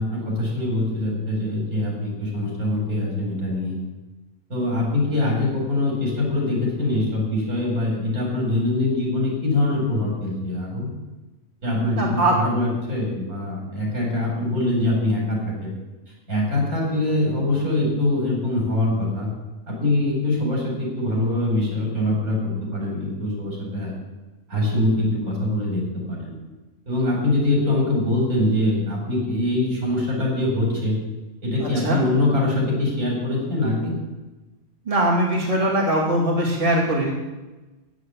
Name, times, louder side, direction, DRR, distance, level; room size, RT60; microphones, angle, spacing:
voice 1, 0.0-3.8 4.5-10.9 11.6-15.7 16.3-19.3 19.7-23.9 24.5-26.3 26.8-31.0 31.4-33.9, left 2 dB, 85° right, -2 dB, 4.8 m, -23 dB
voice 2, 12.0-12.3 31.6-32.0 34.9-37.1, right 1 dB, 25° right, -3 dB, 2.5 m, -21 dB
9.5 x 8.2 x 8.3 m, 1.1 s
omnidirectional pair, 1.5 m